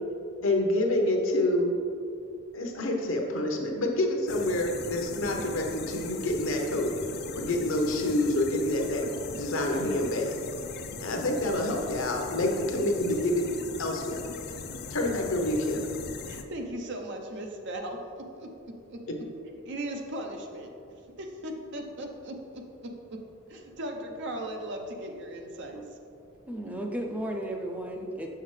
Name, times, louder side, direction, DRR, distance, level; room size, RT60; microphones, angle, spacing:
voice 1, 0.4-1.7 2.5-6.9 7.3-9.0 9.3-10.4 11.0-13.4 13.8-14.2 14.9-15.9, left 1 dB, 65° left, 1 dB, 0.8 m, -27 dB
sound 1, 4.3-16.4, left 5 dB, 50° left, 0.4 m, -40 dB
voice 2, 16.3-19.0 19.6-20.7 21.2-23.2 23.5-25.8 26.6-26.7, right 1 dB, 60° right, 3 dB, 0.7 m, -38 dB
voice 3, 26.5-28.3, right 1 dB, 5° right, 1 dB, 0.4 m, -34 dB
6.3 x 5.7 x 3.2 m, 2.5 s
head